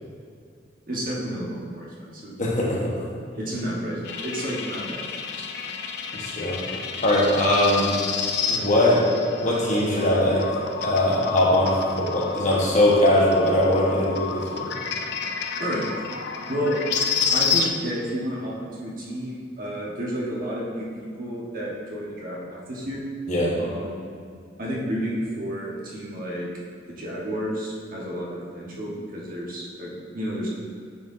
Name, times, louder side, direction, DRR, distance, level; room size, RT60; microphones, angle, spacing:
voice 1, 0.9-2.6 3.0-5.0 15.6-15.8 16.5-16.8 17.3-23.0 23.6-24.0 24.6-26.5 26.9-30.5, equal, 45° right, -5 dB, 1.3 m, -31 dB
voice 2, 2.4-2.9 6.2-6.6 7.0-7.9 8.5-9.0 9.4-10.4 10.8-14.7 23.3-23.5, left 1 dB, 40° left, -5 dB, 1.2 m, -21 dB
sound 1, 4.0-17.7, left 6 dB, 60° left, 0.5 m, -30 dB
9.3 x 4.7 x 2.7 m, 2.3 s
head